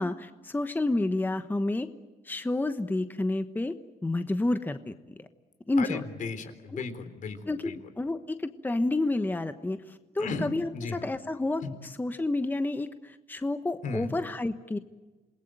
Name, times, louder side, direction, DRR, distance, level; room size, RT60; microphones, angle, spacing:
voice 1, 0.0-1.9 2.2-3.7 4.0-5.3 5.7-6.0 6.7-6.8 7.5-14.8, left 2 dB, 15° left, 9 dB, 1.1 m, -30 dB
voice 2, 5.8-7.8 10.2-11.0 11.6-11.7 13.8-14.1, left 4 dB, 65° left, 10 dB, 3.7 m, -35 dB
28.0 x 20.5 x 9.0 m, 1.2 s
cardioid pair, 100°, 14 cm